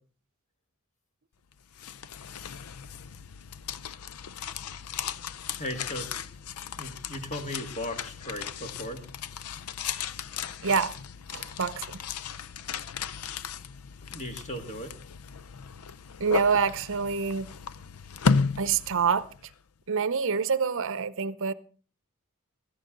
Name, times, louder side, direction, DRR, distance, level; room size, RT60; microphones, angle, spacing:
sound 1, 1.5-19.5, left 5 dB, 85° left, 0.5 m, -35 dB
voice 1, 5.6-6.2 6.8-9.0 14.0-14.9, left 1 dB, 35° left, 2.0 m, -37 dB
voice 2, 10.6-11.0 11.3-12.0 16.2-17.5 18.6-19.3 19.9-21.5, right 6 dB, 60° right, 0.7 m, -26 dB
16.5 x 13.5 x 3.8 m
head